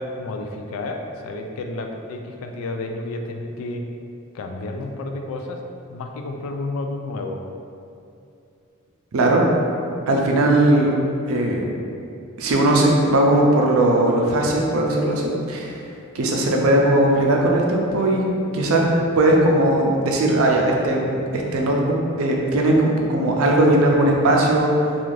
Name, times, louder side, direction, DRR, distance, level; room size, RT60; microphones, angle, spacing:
voice 1, 0.0-3.8 4.3-5.6 5.9-7.4, left 2 dB, 75° left, 4 dB, 0.3 m, -31 dB
voice 2, 9.1-9.4 10.1-10.9 11.3-11.7 12.4-15.7 16.1-18.2 18.5-18.8 19.2-24.7, right 1 dB, 85° right, -1 dB, 0.4 m, -18 dB
2.4 x 2.4 x 3.1 m, 2.6 s
head